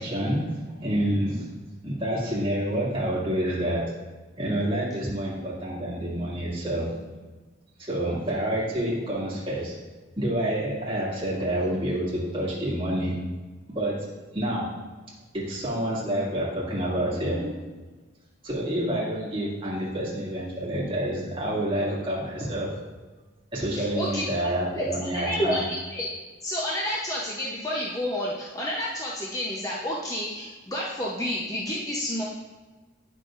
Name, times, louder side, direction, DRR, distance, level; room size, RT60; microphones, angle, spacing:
voice 1, 0.0-1.5 1.8-3.8 4.4-7.1 7.8-9.7 10.2-13.1 13.7-14.0 14.3-14.7 15.3-17.6 18.4-22.7 23.5-25.6, right 1 dB, 25° right, -7 dB, 2.0 m, -28 dB
voice 2, 23.7-24.2 24.8-26.1 26.4-32.2, equal, 15° left, -4 dB, 0.7 m, -30 dB
9.5 x 6.1 x 2.5 m, 1.3 s
head